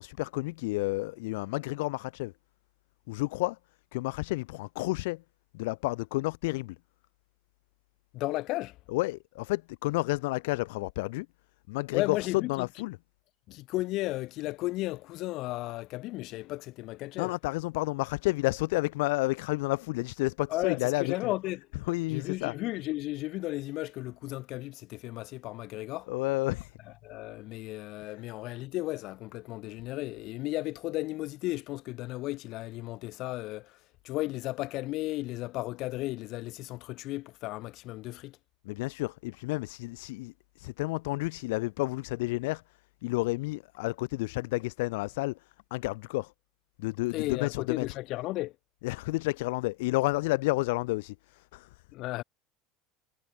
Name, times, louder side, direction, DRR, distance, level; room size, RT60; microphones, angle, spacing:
voice 1, 0.0-2.3 3.1-3.6 3.9-5.2 5.5-6.8 8.9-11.3 11.7-13.0 17.2-21.3 21.9-22.5 26.1-26.8 38.6-42.6 43.0-46.3 46.8-47.9 48.8-51.8, left 22 dB, 75° left, 1.1 m, -31 dB
voice 2, 8.1-8.8 11.9-12.7 13.5-17.3 20.5-21.7 22.1-26.1 27.0-38.4 47.1-48.6 51.9-52.2, left 18 dB, 60° left, 1.7 m, -34 dB
hypercardioid pair, 90°, 0 cm